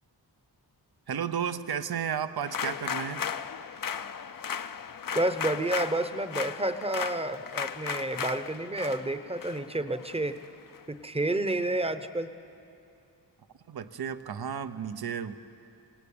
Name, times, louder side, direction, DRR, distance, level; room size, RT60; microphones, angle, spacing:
voice 1, 1.1-3.3 13.7-15.4, right 8 dB, 70° right, 12 dB, 0.9 m, -33 dB
sound 1, 2.4-10.8, left 7 dB, 55° left, 0.7 m, -36 dB
voice 2, 5.1-10.3 10.9-12.3, right 1 dB, 15° right, 10 dB, 0.9 m, -30 dB
25.5 x 18.5 x 8.6 m, 2.7 s
wide cardioid pair, 105°, 39 cm